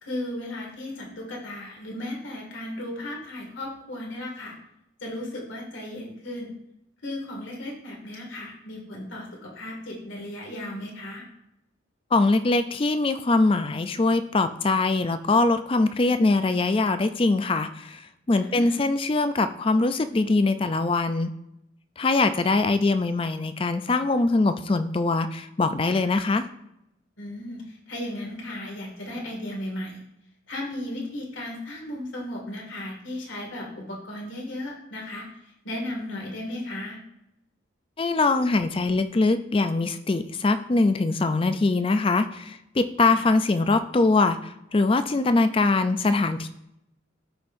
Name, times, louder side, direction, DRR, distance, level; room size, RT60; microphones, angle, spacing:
voice 1, 0.0-4.6 5.0-6.5 7.0-11.2 18.4-18.8 25.9-26.0 27.2-30.0 30.5-35.3 35.6-37.0 43.1-43.2, left 1 dB, 70° left, -1 dB, 2.2 m, -35 dB
voice 2, 12.1-21.3 22.0-26.5 38.0-46.5, left 3 dB, 25° left, 10 dB, 0.4 m, -22 dB
13.5 x 5.4 x 2.6 m, 0.82 s
head